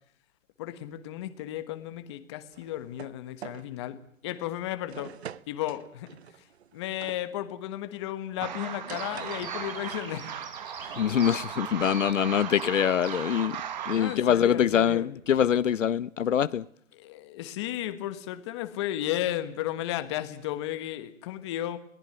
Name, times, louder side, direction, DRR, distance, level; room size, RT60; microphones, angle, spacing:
voice 1, 0.6-5.2 5.5-6.5 6.7-10.3 13.9-15.1 16.9-21.8, left 13 dB, 20° left, 1.3 m, -34 dB
sound 1, 2.5-3.2 3.4-3.7 4.2-4.4 4.9-7.2 8.5-10.0 10.3-11.0, right 9 dB, 50° right, 0.9 m, -45 dB
sound 2, 8.4-14.2, right 9 dB, 35° right, 1.4 m, -37 dB
Bird vocalization bird call bird song, 8.9-14.2, right 3 dB, 90° right, 7.4 m, -46 dB
voice 2, 11.0-16.6, left 9 dB, 65° left, 0.9 m, -24 dB
22.0 x 19.0 x 9.0 m
hypercardioid pair, 165°, 40 cm